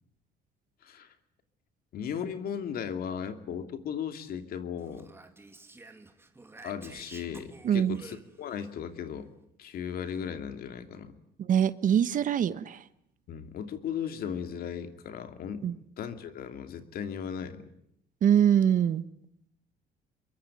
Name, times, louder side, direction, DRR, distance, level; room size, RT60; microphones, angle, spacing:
voice 1, 0.8-1.1 1.9-5.1 6.6-9.3 9.6-11.1 13.3-15.7 16.0-17.7, left 8 dB, 65° left, 8 dB, 2.6 m, -36 dB
Speech, 4.8-8.7, right 2 dB, 15° right, 2.6 m, -51 dB
voice 2, 7.6-8.0 11.4-12.8 15.6-15.8 18.2-19.0, right 9 dB, 50° right, 14 dB, 1.3 m, -24 dB
25.5 x 22.5 x 9.1 m, 0.73 s
cardioid pair, 110°, 17 cm